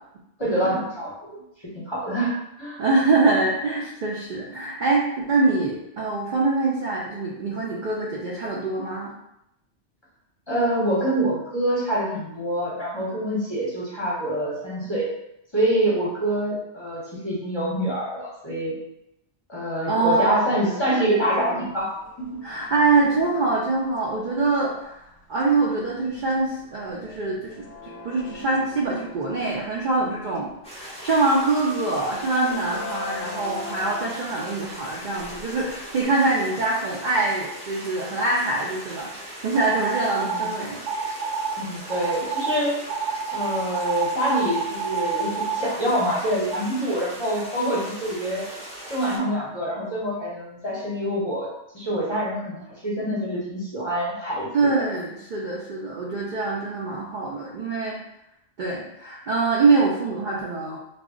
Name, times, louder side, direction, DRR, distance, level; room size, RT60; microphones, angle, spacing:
voice 1, 0.4-2.8 10.5-15.1 15.5-18.7 19.5-21.9 22.2-22.4 40.2-40.5 41.6-42.7 43.3-48.5 48.9-54.9, right 1 dB, 25° left, -8 dB, 0.7 m, -26 dB
voice 2, 2.8-9.1 19.9-20.6 22.4-30.5 30.7-39.1 39.4-40.8 54.5-58.0 58.6-60.8, right 3 dB, 60° right, -4 dB, 0.5 m, -24 dB
sound 1, 20.6-24.0 24.6-24.8 25.4-30.8 31.3-31.6 32.1-36.0, left 3 dB, 70° left, 0.8 m, -42 dB
sound 2, 30.6-49.2, right 1 dB, 10° left, 0.3 m, -40 dB
sound 3, 39.5-40.5 40.9-41.5 41.9-42.5 42.9-45.6, right 6 dB, 75° right, 1.0 m, -28 dB
2.3 x 2.0 x 3.6 m, 0.83 s
omnidirectional pair, 1.2 m